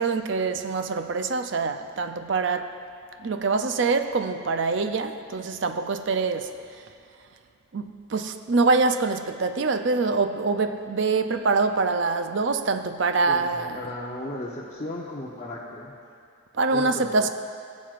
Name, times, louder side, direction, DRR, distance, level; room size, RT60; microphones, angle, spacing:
voice 1, 0.0-2.8 3.2-6.6 7.7-13.8 16.5-17.3, right 4 dB, 60° right, 0.5 m, -25 dB
voice 2, 13.3-16.0 16.7-17.3, left 1 dB, 35° left, 0.8 m, -36 dB
21.5 x 7.4 x 2.5 m
head